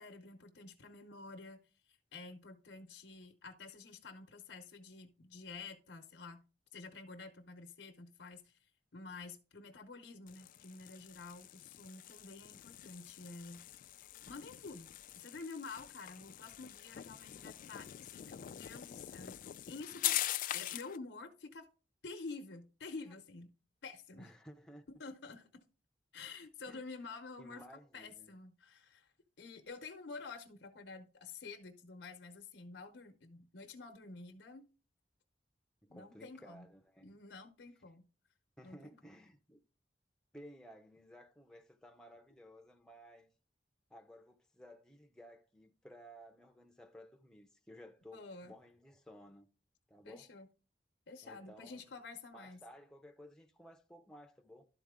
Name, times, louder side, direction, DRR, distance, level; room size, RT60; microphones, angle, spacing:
voice 1, 0.0-1.6 1.9-6.4 6.7-8.5 8.9-13.6 14.3-21.7 22.0-23.5 23.8-24.3 24.9-25.6 26.1-27.6 27.9-29.1 29.4-34.7 35.9-36.7 37.0-38.0 38.6-39.1 48.1-48.5 50.0-50.5 51.1-52.6, left 3 dB, 80° left, 0.8 m, -50 dB
sound 1, 10.3-21.0, left 13 dB, 50° left, 0.3 m, -43 dB
voice 2, 24.2-24.9 26.7-26.8 27.4-28.4 35.8-37.1 38.6-39.6 40.3-43.3 43.9-49.5 49.9-50.3 51.2-51.9 52.3-54.7, equal, 5° left, 0.6 m, -56 dB
12.0 x 4.0 x 3.6 m
head